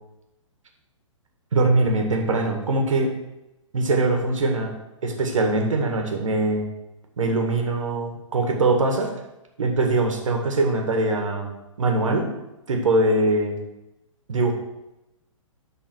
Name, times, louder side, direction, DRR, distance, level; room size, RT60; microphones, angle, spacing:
voice 1, 1.5-3.1 3.7-4.7 5.0-6.7 7.2-9.1 9.6-11.5 11.8-12.3 12.7-13.6 14.3-14.5, right 2 dB, 70° right, 2 dB, 2.0 m, -22 dB
12.0 x 4.2 x 4.7 m, 0.95 s
figure-of-eight pair, 125°, 17 cm